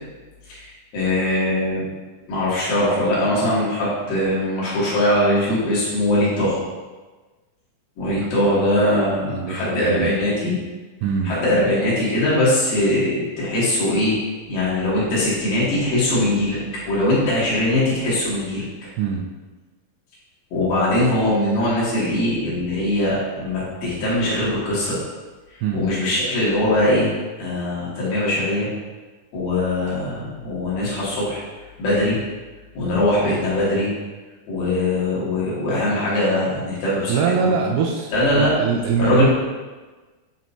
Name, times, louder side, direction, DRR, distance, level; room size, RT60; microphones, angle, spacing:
voice 1, 0.5-1.8 2.3-6.6 8.0-10.6 11.2-14.2 14.5-16.6 16.9-18.9 20.5-25.0 25.7-27.1 27.4-28.7 29.3-31.4 31.8-32.2 32.7-33.9 34.5-37.5 38.1-38.5 39.0-39.3, left 1 dB, 85° left, -9 dB, 4.0 m, -21 dB
voice 2, 9.3-10.1 11.0-11.4 19.0-19.3 25.6-25.9 37.1-39.3, right 6 dB, 75° right, 1 dB, 2.1 m, -23 dB
9.2 x 5.5 x 2.7 m, 1.3 s
omnidirectional pair, 4.1 m